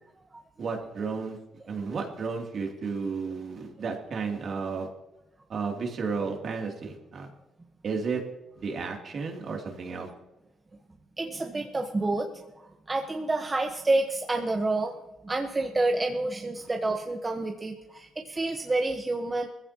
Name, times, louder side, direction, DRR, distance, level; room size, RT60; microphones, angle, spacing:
voice 1, 0.6-1.4 1.7-4.9 5.5-7.3 7.8-8.2 8.6-10.1, right 5 dB, 55° right, 1 dB, 2.9 m, -32 dB
voice 2, 11.2-12.4 12.9-14.9 15.2-19.5, right 2 dB, 25° right, 3 dB, 1.2 m, -28 dB
20.5 x 15.0 x 3.0 m, 0.96 s
cardioid pair, 90°, 0 cm